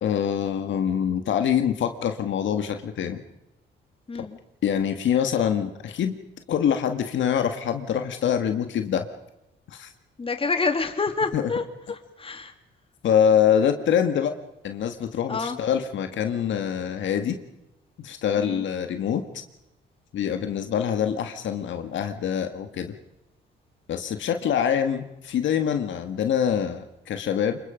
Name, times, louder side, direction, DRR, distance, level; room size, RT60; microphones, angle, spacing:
voice 1, 0.0-3.2 4.2-4.3 4.6-6.2 6.5-9.1 9.7-9.9 11.3-11.4 13.0-14.3 14.6-17.4 18.0-19.4 20.1-22.9 23.9-27.6, left 8 dB, 70° left, 7 dB, 1.8 m, -25 dB
voice 2, 4.1-4.4 10.2-11.6 11.9-12.5 15.3-15.6 18.4-18.7, left 4 dB, 30° left, 7 dB, 2.4 m, -27 dB
26.5 x 23.0 x 5.2 m, 0.89 s
cardioid pair, 90°, 20 cm